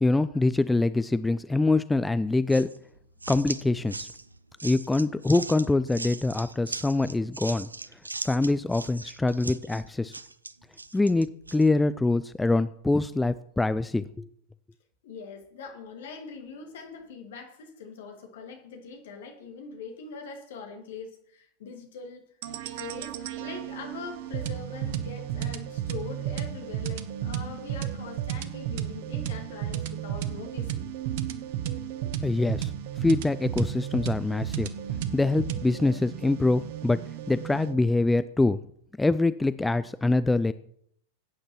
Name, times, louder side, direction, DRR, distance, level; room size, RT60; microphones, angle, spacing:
voice 1, 0.0-2.7 3.3-4.1 4.6-7.7 8.2-10.2 10.9-14.3 32.2-32.7 33.0-34.7 35.1-37.0 37.3-38.6 39.0-40.5, left 2 dB, 5° left, 14 dB, 0.3 m, -24 dB
sound 1, 2.5-11.7, right 3 dB, 80° right, 0.5 m, -39 dB
voice 2, 15.0-22.2 22.7-30.8, left 5 dB, 55° left, 4 dB, 2.0 m, -42 dB
sound 2, 22.4-37.8, right 10 dB, 50° right, 0.7 m, -33 dB
17.0 x 8.8 x 3.0 m, 0.69 s
figure-of-eight pair, 90°, 0 cm